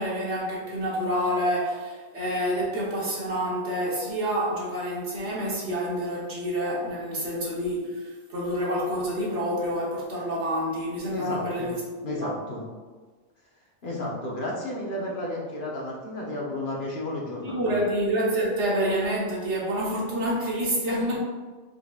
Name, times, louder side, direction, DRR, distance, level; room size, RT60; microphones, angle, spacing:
voice 1, 0.0-12.3 17.4-21.2, equal, 80° right, -5 dB, 1.5 m, -28 dB
voice 2, 11.1-11.7 12.0-12.6 13.8-17.8, left 1 dB, 50° left, -4 dB, 1.0 m, -32 dB
4.9 x 3.7 x 2.4 m, 1.4 s
omnidirectional pair, 1.2 m